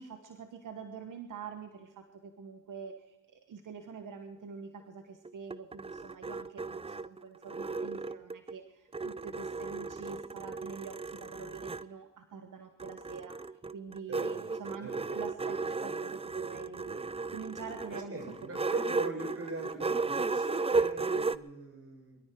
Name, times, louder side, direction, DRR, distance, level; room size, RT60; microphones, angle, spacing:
voice 1, 0.0-13.4 13.7-17.0 17.3-19.2, right 5 dB, 85° right, 7 dB, 1.2 m, -46 dB
sound 1, 5.2-8.6 8.9-11.9 12.8-21.4, right 4 dB, 20° right, 0.5 m, -35 dB
voice 2, 14.1-14.4 14.8-15.0 17.9-22.2, right 2 dB, 50° right, 1 dB, 7.4 m, -41 dB
22.5 x 13.5 x 4.6 m, 0.97 s
cardioid pair, 55°, 31 cm